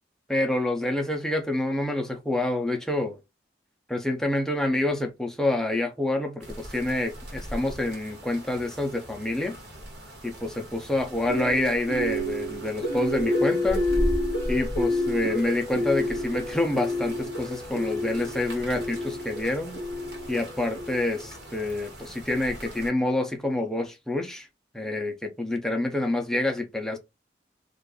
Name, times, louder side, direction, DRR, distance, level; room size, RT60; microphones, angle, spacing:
voice 1, 0.3-3.2 3.9-9.6 10.2-13.9 14.5-19.8 20.3-24.5 24.7-27.0, left 2 dB, 5° left, 0.5 m, -27 dB
sound 1, 6.4-22.9, equal, 75° right, 1.3 m, -38 dB
sound 2, 11.3-21.4, left 1 dB, 55° left, 0.8 m, -30 dB
2.5 x 2.4 x 3.6 m
head